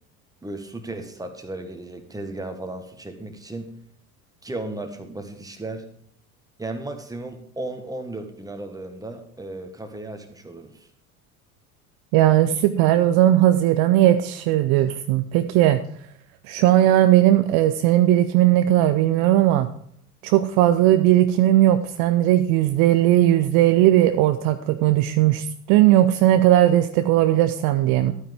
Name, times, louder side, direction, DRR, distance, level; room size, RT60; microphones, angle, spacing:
voice 1, 0.4-3.7 4.4-5.8 6.6-10.9, right 2 dB, 10° right, 6 dB, 1.6 m, -35 dB
voice 2, 12.1-15.8 16.5-19.7 20.2-28.1, right 13 dB, 50° right, 10 dB, 0.7 m, -18 dB
12.5 x 9.0 x 3.6 m, 0.64 s
figure-of-eight pair, 70°, 45 cm